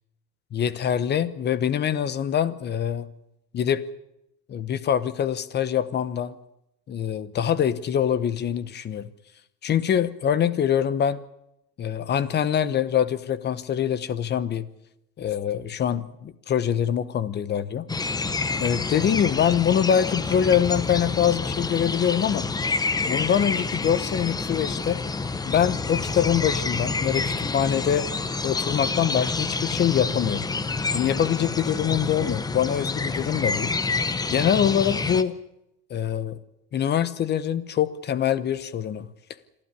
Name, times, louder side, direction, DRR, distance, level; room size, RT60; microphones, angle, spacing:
voice 1, 0.5-3.1 3.5-3.8 4.5-6.4 6.9-9.1 9.6-11.2 11.8-14.7 15.2-17.9 18.6-22.5 23.0-25.0 25.4-28.1 28.4-30.4 30.9-33.7 34.3-35.4 35.9-36.4 36.7-39.1, left 9 dB, 35° left, 17 dB, 1.0 m, -24 dB
sound 1, 17.9-35.2, left 3 dB, 10° left, 0.7 m, -28 dB
27.0 x 12.0 x 9.8 m, 0.86 s
cardioid pair, 150°, 31 cm